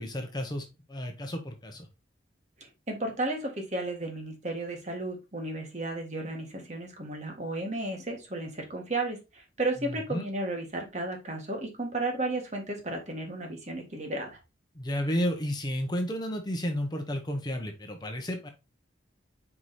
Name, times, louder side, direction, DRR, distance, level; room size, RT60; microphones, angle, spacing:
voice 1, 0.0-1.9 9.8-10.3 14.7-18.5, equal, 20° left, 4 dB, 0.9 m, -32 dB
voice 2, 2.6-14.4, right 2 dB, 35° right, 2 dB, 1.7 m, -33 dB
4.9 x 4.7 x 4.1 m, 0.26 s
head